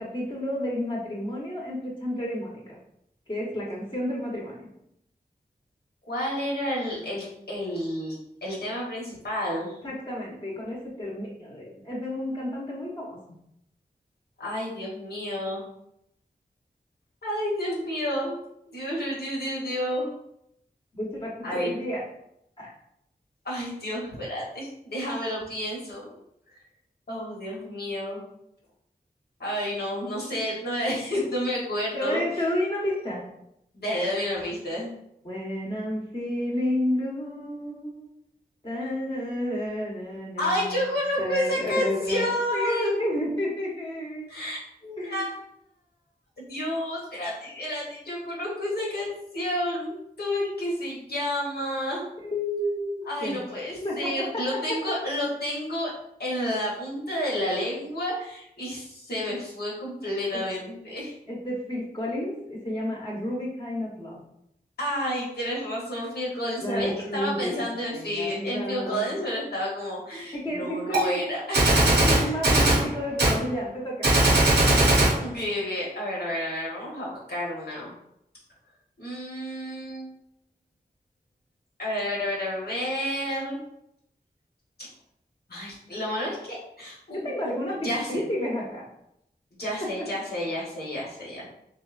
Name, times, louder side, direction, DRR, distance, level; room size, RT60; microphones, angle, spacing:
voice 1, 0.0-2.8 3.3-4.6 9.8-13.2 20.9-22.0 22.6-22.7 31.9-33.2 35.2-38.1 38.6-44.3 45.0-45.3 52.2-53.4 53.8-54.4 60.3-60.4 61.3-64.2 66.6-69.1 70.3-71.2 71.9-74.1 87.1-88.8, left 1 dB, 30° left, -4 dB, 0.9 m, -31 dB
voice 2, 6.1-9.8 14.4-15.6 17.2-18.4 18.6-20.1 21.4-21.7 23.4-26.2 27.1-28.2 29.4-32.2 33.7-34.9 40.4-43.0 44.3-45.3 46.4-52.0 53.0-55.9 56.2-61.1 64.8-71.7 72.1-72.3 75.2-77.9 79.0-80.1 81.8-83.6 84.8-84.9 85.5-87.5 87.8-88.2 89.6-91.5, equal, 75° left, -5 dB, 1.0 m, -30 dB
Gunshot gunfire, 70.9-71.0 71.5-72.8 73.2-73.4 74.0-75.2, right 2 dB, 90° right, 0.9 m, -19 dB
3.1 x 2.1 x 2.4 m, 0.77 s
wide cardioid pair, 45°, 17 cm